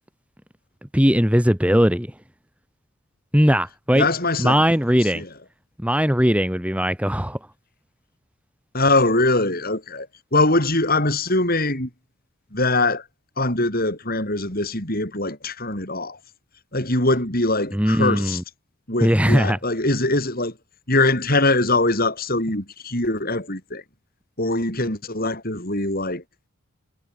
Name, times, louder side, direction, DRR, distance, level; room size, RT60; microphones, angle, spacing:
voice 1, 0.9-2.1 3.3-4.1 4.4-5.2 5.8-7.4 17.7-18.4 19.0-19.6, equal, 5° right, 2.8 m, -19 dB
voice 2, 3.9-4.6 5.2-5.3 8.7-11.9 12.5-13.0 13.4-16.2 16.7-18.4 18.9-20.5 20.9-23.8 24.4-26.2, left 2 dB, 40° left, 7.5 m, -22 dB
head